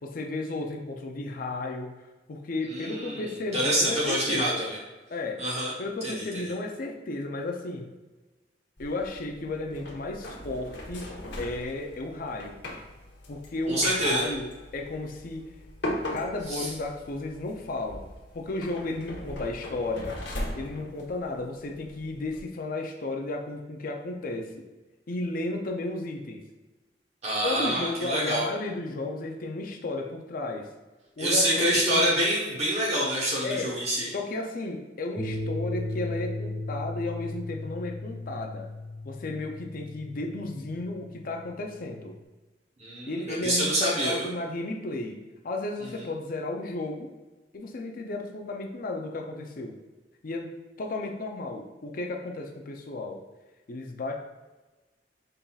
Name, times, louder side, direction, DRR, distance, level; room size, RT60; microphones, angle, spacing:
voice 1, 0.0-2.0 2.3-4.7 5.1-5.4 5.8-7.9 8.8-11.1 11.4-12.6 13.3-15.5 16.1-18.1 18.3-20.2 20.5-24.7 25.1-26.4 27.4-30.7 31.2-32.0 33.4-33.7 34.1-38.7 39.0-42.1 43.1-47.1 47.5-49.8 50.2-50.5 50.8-53.2 53.7-54.1, left 2 dB, 50° left, 2 dB, 0.5 m, -33 dB
voice 2, 2.7-4.8 5.4-5.7 6.0-6.2 13.7-14.3 16.5-16.7 27.2-28.5 31.2-34.1 42.8-44.3, right 1 dB, 40° right, -4 dB, 1.0 m, -26 dB
sound 1, 8.8-22.4, left 1 dB, 85° left, 1.0 m, -40 dB
sound 2, 35.2-42.2, left 2 dB, 10° left, 1.3 m, -36 dB
5.5 x 3.9 x 2.3 m, 1.2 s
head